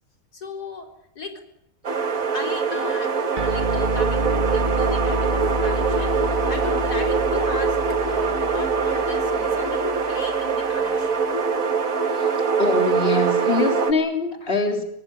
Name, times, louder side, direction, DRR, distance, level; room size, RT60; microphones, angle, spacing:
voice 1, 0.3-1.4 2.3-11.2, left 2 dB, 80° left, 4 dB, 4.7 m, -36 dB
sound 1, 1.8-13.9, right 5 dB, 60° right, 2.2 m, -23 dB
sound 2, 3.4-10.2, right 1 dB, 30° right, 1.9 m, -29 dB
voice 2, 12.6-14.8, left 2 dB, 35° left, 3 dB, 3.9 m, -23 dB
26.0 x 19.0 x 7.7 m, 0.76 s
omnidirectional pair, 1.7 m